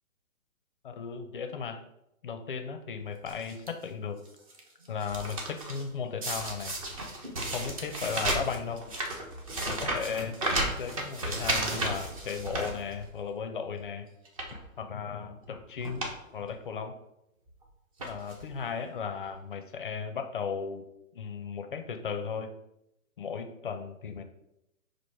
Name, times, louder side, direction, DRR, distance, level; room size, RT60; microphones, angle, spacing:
voice 1, 0.8-1.8 2.2-4.2 4.9-6.8 7.5-8.8 9.7-14.1 14.8-16.1 16.3-16.9 18.0-20.8 21.1-22.5 23.2-24.2, left 6 dB, 40° left, 7 dB, 0.4 m, -36 dB
sound 1, 3.2-3.7 4.2-4.6 4.8-5.8 6.2-13.3 13.7-13.8 14.2-14.6 15.4-15.5 15.8-16.2 16.5-16.6 17.5-17.6 18.0-18.5 19.2-19.3 19.5-19.6, right 1 dB, 25° right, 0.5 m, -33 dB
4.7 x 2.5 x 4.4 m, 0.84 s
hypercardioid pair, 145°, 42 cm